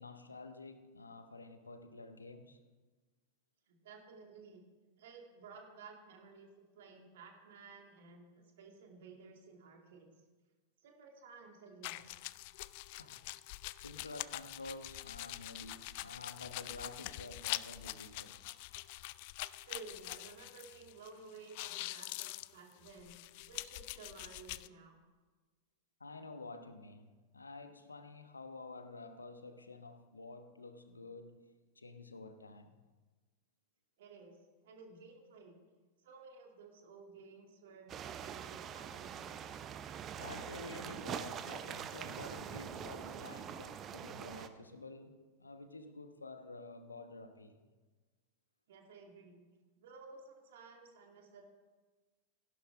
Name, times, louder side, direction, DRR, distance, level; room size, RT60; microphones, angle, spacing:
voice 1, 0.0-2.6 12.9-13.2 13.8-18.4 26.0-32.8 40.2-47.6, left 3 dB, 80° left, 1.0 m, -50 dB
voice 2, 3.7-4.6 5.0-10.1 10.8-12.2 19.6-23.2 23.5-25.0 34.0-34.4 34.6-35.6 36.0-39.5 48.7-49.5 49.8-51.5, right 4 dB, 55° right, 2.3 m, -55 dB
sound 1, 11.8-21.1 21.4-24.7, left 19 dB, 45° left, 0.3 m, -44 dB
sound 2, 37.9-44.5, right 8 dB, 30° right, 0.7 m, -44 dB
16.0 x 11.5 x 3.7 m
figure-of-eight pair, 90°, 0 cm